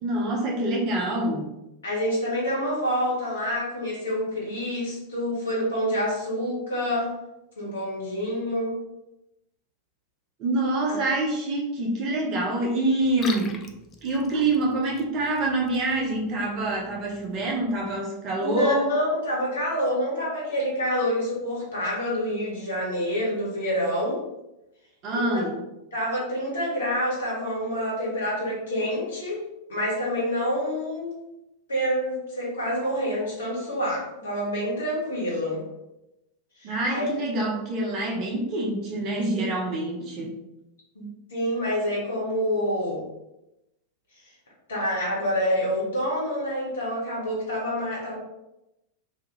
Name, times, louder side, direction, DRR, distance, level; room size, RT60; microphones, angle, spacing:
voice 1, 0.0-1.5 10.4-13.6 14.0-18.9 25.0-25.6 36.6-40.4, right 2 dB, 40° right, -1 dB, 0.8 m, -26 dB
voice 2, 1.8-7.1 7.6-8.8 10.9-11.0 18.4-24.2 25.1-25.3 25.9-29.4 29.7-31.1 31.7-35.6 36.6-37.1 40.0-40.1 40.9-43.0 44.7-48.1, equal, 70° left, -5 dB, 1.4 m, -27 dB
Liquid, 13.0-18.0, left 5 dB, 25° left, 0.3 m, -44 dB
2.8 x 2.3 x 3.1 m, 0.91 s
figure-of-eight pair, 90°, 0 cm